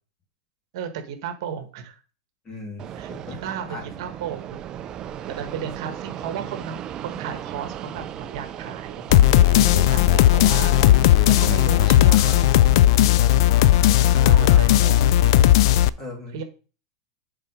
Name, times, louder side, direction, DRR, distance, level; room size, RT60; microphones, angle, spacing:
voice 1, 0.7-2.0 2.9-4.6 5.3-12.5 12.9-13.2 14.2-15.3 16.3-16.4, right 8 dB, 60° right, 7 dB, 1.3 m, -35 dB
voice 2, 2.4-3.9 5.2-5.4 13.9-14.7 16.0-16.4, left 2 dB, 20° left, 1 dB, 2.7 m, -39 dB
Fixed-wing aircraft airplane, 2.8-11.9, right 10 dB, 25° right, 0.4 m, -36 dB
sound 1, 9.1-15.9, left 13 dB, 55° left, 0.3 m, -16 dB
7.8 x 4.0 x 5.1 m, 0.36 s
supercardioid pair, 150°, 3 cm